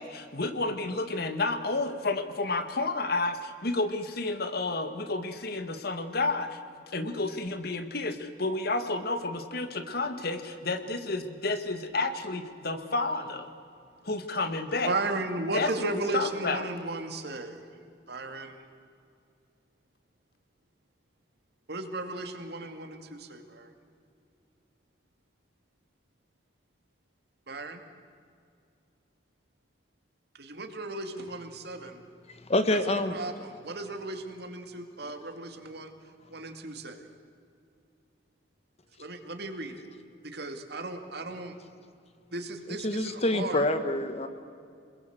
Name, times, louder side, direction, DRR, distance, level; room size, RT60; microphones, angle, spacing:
voice 1, 0.0-6.6 6.9-13.5 14.0-14.9 15.5-16.6, left 3 dB, 55° left, 8 dB, 1.9 m, -31 dB
voice 2, 14.9-17.6 18.1-18.6 21.7-23.7 27.5-27.8 30.4-32.0 32.7-35.9 36.3-37.0 39.0-39.9 40.3-41.5 42.3-43.8, right 2 dB, 60° right, 6 dB, 2.5 m, -35 dB
voice 3, 32.5-33.2 42.8-44.3, left 1 dB, 35° left, 10 dB, 1.5 m, -26 dB
27.0 x 21.0 x 8.0 m, 2.4 s
head